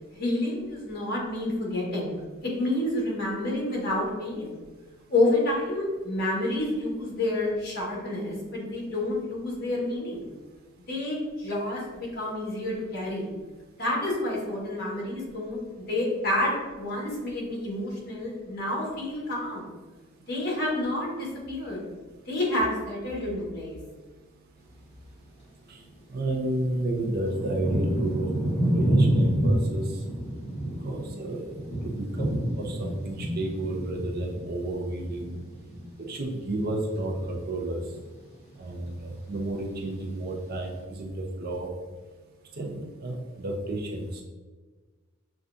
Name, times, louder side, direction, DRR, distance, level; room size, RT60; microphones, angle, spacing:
voice 1, 0.2-2.2 2.4-4.6 5.1-10.3 10.9-13.3 13.8-19.7 20.3-21.8 22.3-23.8, left 1 dB, 50° left, -4 dB, 1.4 m, -29 dB
Thunder / Rain, 25.9-26.0 26.6-36.2 36.5-37.3 37.9-38.2 38.5-39.3 39.9-40.0, right 1 dB, 30° left, 1.2 m, -28 dB
voice 2, 26.1-30.0 30.8-35.4 36.1-37.8 38.6-41.7 42.6-44.2, right 1 dB, 45° right, 0 dB, 0.6 m, -31 dB
6.8 x 2.4 x 2.5 m, 1.3 s
head